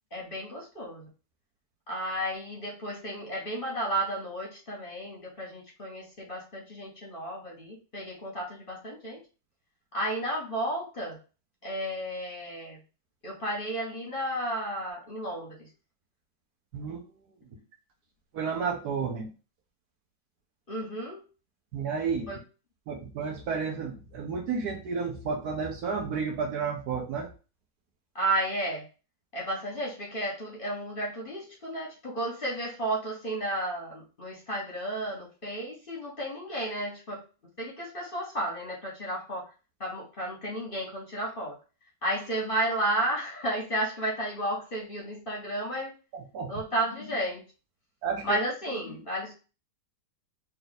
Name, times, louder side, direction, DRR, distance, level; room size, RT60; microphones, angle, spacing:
voice 1, 0.1-1.1 1.9-9.2 9.9-11.2 11.6-12.8 13.2-15.7 20.7-21.2 22.3-22.4 28.1-28.8 29.3-37.2 37.6-39.5 39.8-41.5 42.0-45.9 46.5-47.4 48.2-49.3, right 1 dB, 35° left, -3 dB, 1.0 m, -32 dB
voice 2, 16.7-17.0 18.3-19.3 21.7-22.4 22.9-27.3 46.1-46.5 48.0-48.4, right 5 dB, 65° right, 2 dB, 1.1 m, -31 dB
3.2 x 2.8 x 4.0 m, 0.34 s
omnidirectional pair, 2.0 m